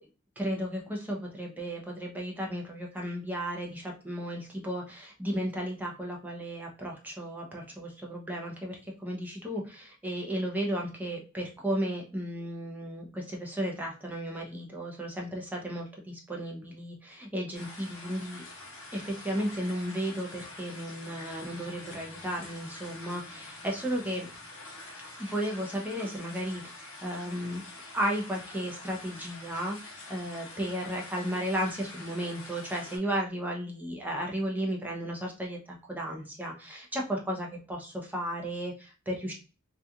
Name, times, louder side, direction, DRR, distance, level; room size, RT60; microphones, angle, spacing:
voice 1, 0.4-18.4 18.9-24.3 25.2-27.6 27.9-39.3, equal, 10° right, -1 dB, 0.6 m, -34 dB
sound 1, 17.5-33.0, left 2 dB, 65° left, 0.9 m, -46 dB
2.8 x 2.4 x 2.3 m, 0.34 s
head